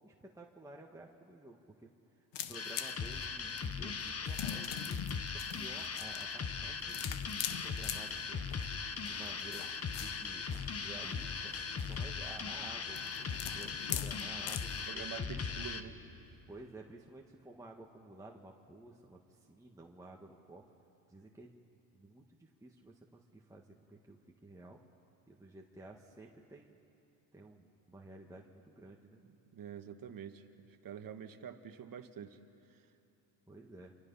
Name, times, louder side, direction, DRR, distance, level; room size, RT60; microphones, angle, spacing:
voice 1, 0.0-1.6 2.1-8.5 9.0-9.6 10.0-10.5 10.8-11.5 11.8-15.3 16.5-20.6 21.1-21.5 21.9-24.8 25.3-26.8 27.3-29.2 33.5-33.9, right 2 dB, 5° right, -1 dB, 1.7 m, -53 dB
sound 1, 2.3-14.9, left 11 dB, 60° left, 1.1 m, -45 dB
sound 2, 2.5-15.8, left 5 dB, 30° left, 1.3 m, -39 dB
sound 3, 6.4-16.4, left 2 dB, 80° left, 6.8 m, -60 dB
voice 2, 14.9-16.0 29.2-30.4 30.8-32.4, right 8 dB, 45° right, 6 dB, 1.7 m, -46 dB
30.0 x 24.5 x 5.7 m, 2.7 s
supercardioid pair, 90°, 48 cm